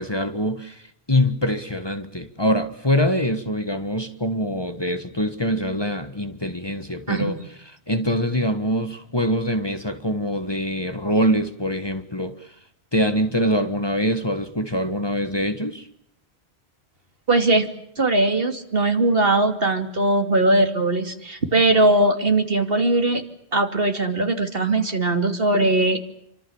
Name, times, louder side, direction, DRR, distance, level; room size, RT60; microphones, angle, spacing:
voice 1, 0.0-7.4 7.9-12.6 12.9-15.9, equal, 25° left, 8 dB, 1.6 m, -24 dB
voice 2, 17.3-17.7 18.0-23.2 23.5-26.0, right 2 dB, 60° right, 6 dB, 3.0 m, -20 dB
28.0 x 25.5 x 7.2 m, 0.75 s
omnidirectional pair, 1.1 m